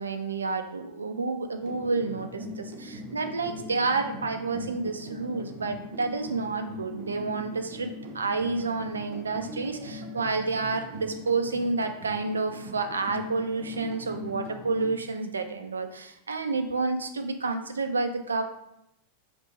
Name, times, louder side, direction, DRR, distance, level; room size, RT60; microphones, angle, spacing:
voice 1, 0.0-18.4, right 3 dB, 75° right, 7 dB, 0.4 m, -30 dB
sound 1, 1.6-14.9, left 1 dB, 45° right, 0.7 m, -41 dB
3.4 x 2.9 x 4.1 m, 0.80 s
figure-of-eight pair, 90°, 0 cm